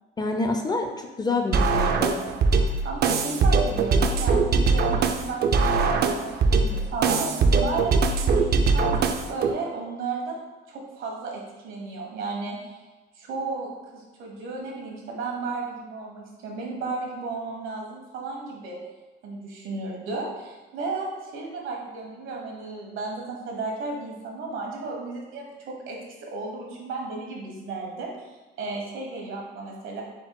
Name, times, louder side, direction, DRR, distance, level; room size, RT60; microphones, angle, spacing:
voice 1, 0.2-2.2, left 3 dB, 20° left, 3 dB, 0.4 m, -27 dB
sound 1, 1.5-9.5, right 4 dB, 50° right, 0.4 m, -22 dB
voice 2, 2.6-9.0 9.3-10.4 10.7-12.8 13.1-18.8 19.2-25.5 25.9-30.0, right 3 dB, 80° right, -1 dB, 1.2 m, -34 dB
4.4 x 2.1 x 4.6 m, 1.2 s
cardioid pair, 115°, 20 cm